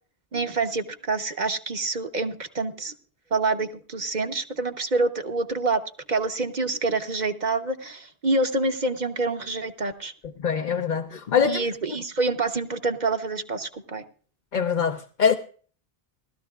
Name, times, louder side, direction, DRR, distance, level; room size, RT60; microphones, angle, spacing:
voice 1, 0.3-2.9 3.3-5.8 6.1-10.1 11.4-14.0, right 3 dB, 45° right, 1.1 m, -27 dB
voice 2, 10.4-11.6 14.5-15.3, left 7 dB, 50° left, 0.9 m, -23 dB
19.5 x 13.5 x 2.4 m
omnidirectional pair, 1.0 m